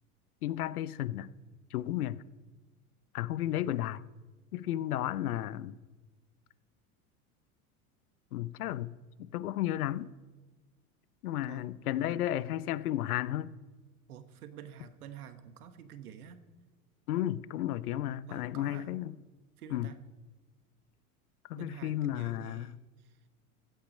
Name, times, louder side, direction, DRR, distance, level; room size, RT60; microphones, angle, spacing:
voice 1, 0.4-1.3 1.7-2.2 3.1-4.0 4.5-5.7 8.3-8.9 9.2-10.1 11.2-13.5 17.1-19.2 19.7-19.9 21.5-22.7, left 13 dB, 80° left, 0.6 m, -33 dB
voice 2, 11.4-12.2 14.1-16.4 18.3-18.9 19.6-20.0 21.5-23.2, right 9 dB, 80° right, 1.3 m, -49 dB
15.5 x 8.6 x 5.4 m
hypercardioid pair, 90°, 44 cm